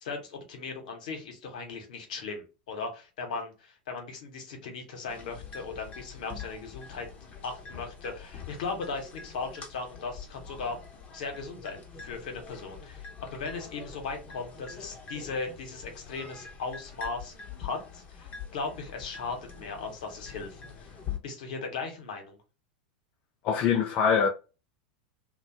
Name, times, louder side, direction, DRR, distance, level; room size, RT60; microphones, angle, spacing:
voice 1, 0.0-7.1 7.4-10.8 11.1-20.9 21.2-22.4, left 4 dB, 70° left, 0.9 m, -38 dB
sound 1, 5.1-21.2, left 6 dB, 30° left, 0.8 m, -44 dB
voice 2, 23.4-24.3, left 7 dB, 45° left, 0.4 m, -23 dB
2.7 x 2.1 x 2.7 m
hypercardioid pair, 95°, 4 cm